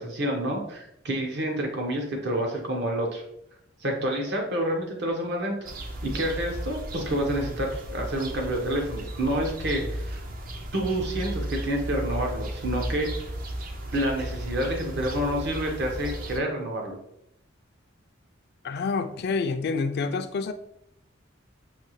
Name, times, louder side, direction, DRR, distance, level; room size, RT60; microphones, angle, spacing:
voice 1, 0.0-3.2 3.8-5.6 6.0-10.2 10.7-13.1 13.9-16.9, right 1 dB, 60° right, 1 dB, 1.0 m, -28 dB
sound 1, 5.7-16.4, right 1 dB, 45° right, 0.5 m, -35 dB
voice 2, 18.6-20.5, left 4 dB, 55° left, 10 dB, 0.3 m, -28 dB
5.5 x 2.7 x 3.0 m, 0.78 s
head